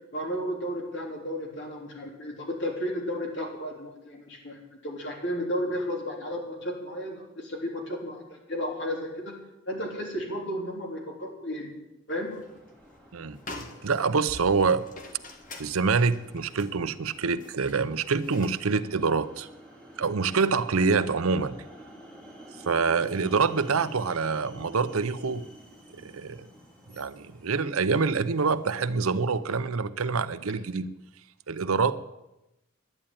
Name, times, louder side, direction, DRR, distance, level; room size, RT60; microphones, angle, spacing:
voice 1, 0.1-9.3 9.6-11.7 12.1-12.3, equal, 55° left, 0 dB, 3.4 m, -33 dB
sound 1, 12.1-12.6 12.9-13.0 13.3-18.6, left 2 dB, 40° left, 1.5 m, -46 dB
sound 2, 12.1-29.6, equal, 5° left, 2.7 m, -50 dB
voice 2, 13.8-14.9 15.6-19.5 20.0-21.6 22.7-25.4 26.0-26.5 26.9-30.9 31.5-32.0, right 4 dB, 80° right, 14 dB, 0.7 m, -26 dB
11.0 x 9.9 x 9.0 m, 0.94 s
head